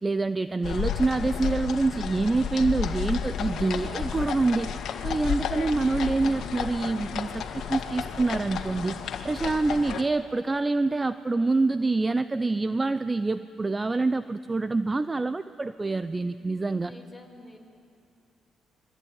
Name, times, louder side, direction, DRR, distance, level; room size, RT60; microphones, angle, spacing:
voice 1, 0.0-4.7 5.0-9.0 9.2-16.9, right 3 dB, 20° right, 13 dB, 0.6 m, -26 dB
sound 1, 0.6-10.0, left 7 dB, 70° left, 2.0 m, -32 dB
voice 2, 16.7-17.6, left 1 dB, 5° left, 1 dB, 4.9 m, -49 dB
27.5 x 23.5 x 9.3 m, 2.5 s
cardioid pair, 90°, 0 cm